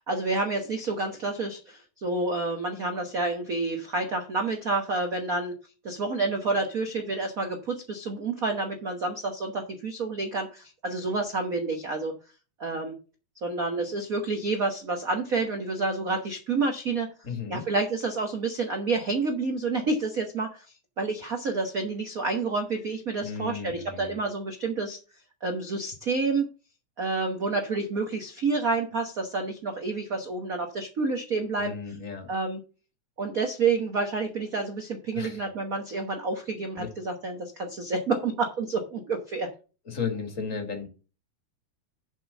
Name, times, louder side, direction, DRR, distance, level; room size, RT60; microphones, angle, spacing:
voice 1, 0.1-5.5 5.8-12.1 12.6-12.9 13.4-17.1 17.5-20.6 21.0-25.0 25.4-26.5 27.0-31.7 32.3-32.6 33.2-39.5, right 3 dB, 65° right, 4 dB, 0.8 m, -29 dB
voice 2, 17.2-17.6 23.2-24.2 31.6-32.3 35.1-35.4 36.8-36.9 39.9-40.9, left 6 dB, 30° left, 5 dB, 1.8 m, -34 dB
7.6 x 5.4 x 7.1 m, 0.34 s
omnidirectional pair, 3.5 m